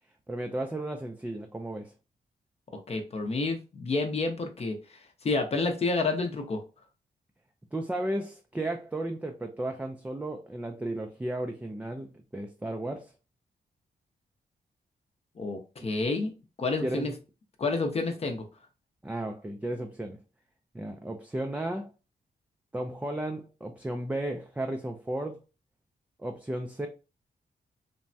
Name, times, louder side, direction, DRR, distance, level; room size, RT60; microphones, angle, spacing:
voice 1, 0.3-1.9 7.7-13.1 15.8-15.9 16.8-17.1 19.0-20.2 20.7-21.9 22.7-25.4 26.2-26.9, right 1 dB, 10° right, 0.3 m, -34 dB
voice 2, 2.9-6.6 15.4-16.3 16.6-17.1 17.6-18.4, left 3 dB, 40° left, 0.6 m, -29 dB
3.3 x 2.1 x 2.6 m
cardioid pair, 105°, 16 cm